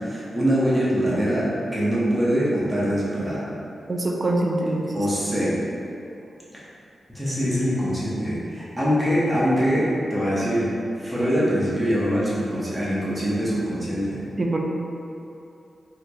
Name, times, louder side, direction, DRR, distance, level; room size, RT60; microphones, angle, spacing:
voice 1, 0.0-3.4 4.9-5.6 7.1-10.7 11.0-14.2, equal, 10° right, -9 dB, 0.8 m, -23 dB
voice 2, 3.9-4.8 14.4-14.6, right 2 dB, 30° right, 0 dB, 0.4 m, -23 dB
4.4 x 2.8 x 2.3 m, 2.7 s
wide cardioid pair, 145°, 0 cm